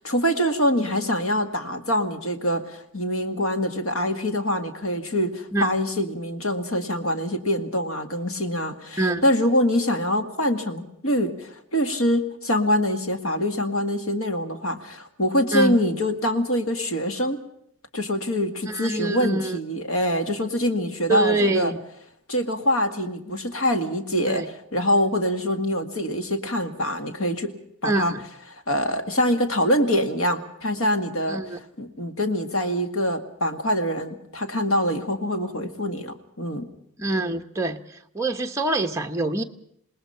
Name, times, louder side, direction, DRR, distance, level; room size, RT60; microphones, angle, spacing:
voice 1, 0.0-17.4 17.9-21.7 22.3-27.5 27.8-28.1 28.5-36.7, equal, 70° left, 7 dB, 2.1 m, -24 dB
voice 2, 18.6-19.6 21.1-21.8 24.3-24.5 27.8-28.2 31.3-31.6 37.0-37.8 38.1-39.4, right 3 dB, 15° right, 3 dB, 1.1 m, -25 dB
27.0 x 19.5 x 5.7 m, 0.71 s
head